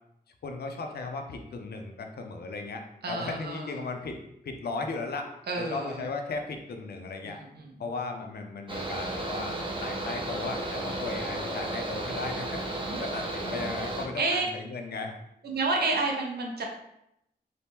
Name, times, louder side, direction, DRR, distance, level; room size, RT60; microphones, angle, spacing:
voice 1, 0.4-4.2 4.4-5.3 5.6-7.4 7.8-12.6 12.9-15.1, left 3 dB, 75° left, 4 dB, 0.4 m, -36 dB
voice 2, 3.0-3.8 5.5-6.0 7.2-7.7 12.8-13.0 14.2-14.5 15.4-16.6, right 3 dB, 75° right, 1 dB, 0.6 m, -30 dB
Mechanical fan, 8.7-14.0, right 1 dB, 30° right, 0.5 m, -33 dB
2.9 x 2.1 x 3.3 m, 0.80 s
wide cardioid pair, 105°, 17 cm